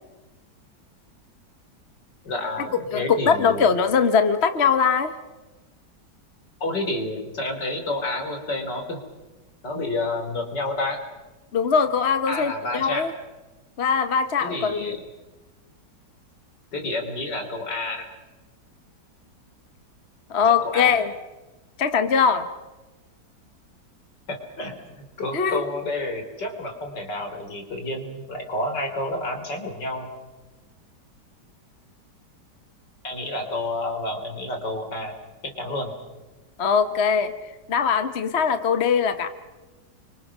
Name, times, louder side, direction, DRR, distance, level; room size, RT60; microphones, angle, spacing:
voice 1, 2.2-3.7 6.6-9.0 9.6-11.0 12.3-13.1 14.4-15.0 16.7-18.1 20.4-21.0 24.3-30.1 33.0-35.1 35.4-35.9, left 2 dB, 75° left, 4 dB, 4.3 m, -30 dB
voice 2, 2.9-5.1 11.5-13.1 13.8-15.0 20.3-21.1 21.8-22.5 25.3-25.6 36.6-37.3 37.7-39.3, left 6 dB, 40° left, 9 dB, 1.3 m, -21 dB
30.0 x 24.5 x 6.2 m, 1.2 s
omnidirectional pair, 1.9 m